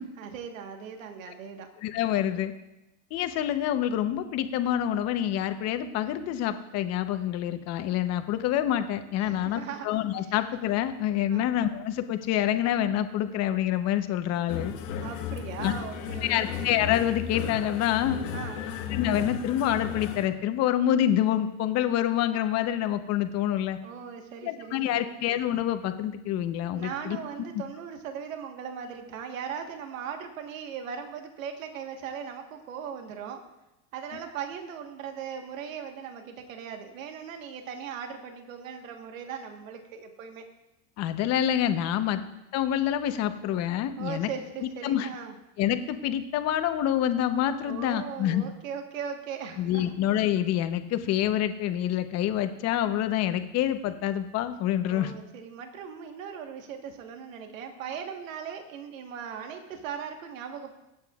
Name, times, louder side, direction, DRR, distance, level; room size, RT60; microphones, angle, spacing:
voice 1, 0.2-1.7 9.2-9.9 10.2-10.3 11.3-11.5 15.0-16.5 18.3-18.6 23.8-25.0 26.7-33.4 33.9-40.5 42.0-42.1 44.0-45.3 47.6-49.9 54.9-60.7, right 7 dB, 90° right, 4 dB, 1.5 m, -39 dB
voice 2, 1.8-2.5 3.1-14.7 15.6-15.7 16.3-18.2 18.9-23.8 24.4-27.2 41.0-42.2 42.5-44.3 44.8-45.1 45.6-48.4 49.6-55.1, left 11 dB, 40° left, 9 dB, 0.9 m, -27 dB
sound 1, 14.5-20.3, left 8 dB, 75° left, 1.7 m, -34 dB
23.5 x 9.0 x 2.5 m, 0.94 s
supercardioid pair, 140°, 39 cm